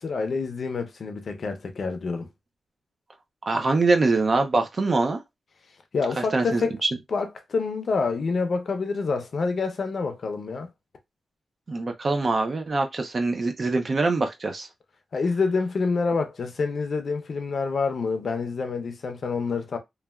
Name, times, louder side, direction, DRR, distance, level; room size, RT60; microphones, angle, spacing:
voice 1, 0.0-2.3 5.9-6.8 7.1-10.7 15.1-19.8, left 4 dB, 55° left, 0.6 m, -27 dB
voice 2, 3.5-5.2 6.2-6.7 11.7-14.7, right 3 dB, 40° right, 0.5 m, -23 dB
3.1 x 2.3 x 2.3 m
wide cardioid pair, 120°, 0 cm